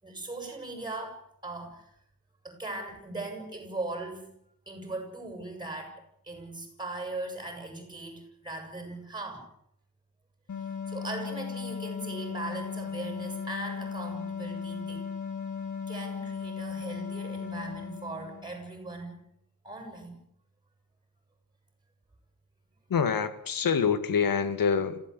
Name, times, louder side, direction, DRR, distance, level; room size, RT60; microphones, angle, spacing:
voice 1, 0.0-1.8 2.4-4.3 4.7-5.9 6.2-9.5 10.9-15.0 15.9-19.2 19.6-20.2, right 2 dB, 10° right, 3 dB, 7.6 m, -39 dB
sound 1, 10.5-18.6, left 6 dB, 60° left, 3.4 m, -36 dB
voice 2, 22.9-25.0, left 6 dB, 75° left, 11 dB, 2.0 m, -26 dB
26.0 x 16.5 x 8.4 m, 0.72 s
wide cardioid pair, 170°, 34 cm